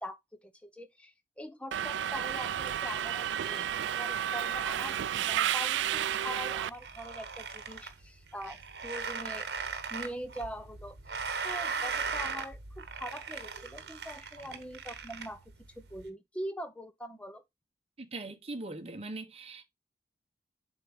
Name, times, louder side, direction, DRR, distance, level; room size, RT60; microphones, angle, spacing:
voice 1, 0.0-3.7 4.0-5.0 5.3-9.5 9.9-15.4 15.8-17.4, equal, 5° left, 0.7 m, -43 dB
Subway metro underground, 1.7-6.7, right 10 dB, 90° right, 0.3 m, -31 dB
sound 1, 6.5-16.1, right 5 dB, 65° right, 1.1 m, -39 dB
voice 2, 18.0-19.6, right 2 dB, 35° right, 1.0 m, -41 dB
7.5 x 4.5 x 3.2 m
head